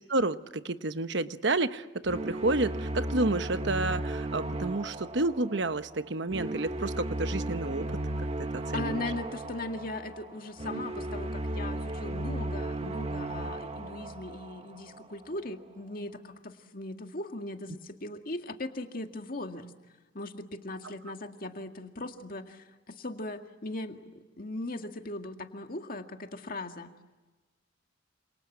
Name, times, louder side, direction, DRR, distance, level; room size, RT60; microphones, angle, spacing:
voice 1, 0.1-8.3 8.5-9.0 12.8-12.9, right 2 dB, 65° right, 11 dB, 1.1 m, -30 dB
sound 1, 2.1-15.1, right 1 dB, 35° right, 1.6 m, -35 dB
voice 2, 8.7-19.7 20.1-24.0 24.4-26.9, left 2 dB, 50° left, 5 dB, 2.1 m, -39 dB
28.5 x 27.5 x 7.4 m, 1.2 s
head